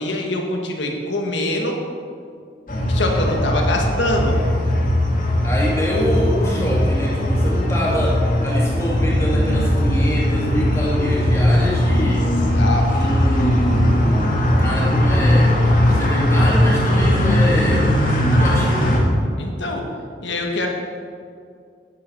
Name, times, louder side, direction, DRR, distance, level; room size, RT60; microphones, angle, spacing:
voice 1, 0.0-1.8 2.9-4.4 12.0-12.2 12.5-13.2 19.4-19.9 20.2-20.7, left 1 dB, 90° left, 2 dB, 1.6 m, -24 dB
sound 1, 2.7-19.0, equal, 45° left, 1.8 m, -18 dB
voice 2, 5.4-12.3 12.9-19.1, left 1 dB, 15° left, -6 dB, 2.4 m, -25 dB
11.0 x 8.7 x 4.6 m, 2.2 s
head